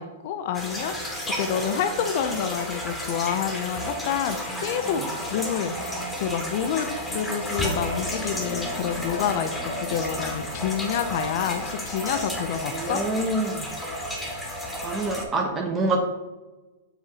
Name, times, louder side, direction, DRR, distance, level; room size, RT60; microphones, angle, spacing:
voice 1, 0.0-5.0 5.3-5.7 6.2-6.9 7.1-13.0, left 8 dB, 55° left, 9 dB, 0.5 m, -28 dB
sound 1, 0.5-15.2, equal, 10° left, 1.1 m, -32 dB
voice 2, 12.7-13.7 14.8-16.0, right 2 dB, 20° right, 0 dB, 0.8 m, -26 dB
7.4 x 2.7 x 4.9 m, 1.2 s
hypercardioid pair, 120°, 0 cm